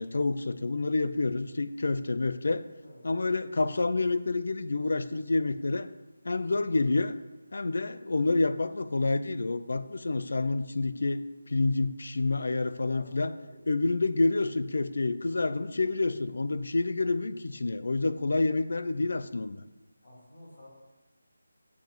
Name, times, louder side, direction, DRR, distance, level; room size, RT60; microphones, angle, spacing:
voice 1, 0.0-2.6 3.0-5.9 6.2-7.1 7.5-13.3 13.7-19.6, left 3 dB, 45° left, 12 dB, 0.6 m, -28 dB
voice 2, 2.8-3.1 13.0-13.6 20.0-20.7, left 1 dB, 30° left, -5 dB, 3.4 m, -52 dB
7.3 x 7.2 x 7.9 m, 1.1 s
figure-of-eight pair, 180°, 0 cm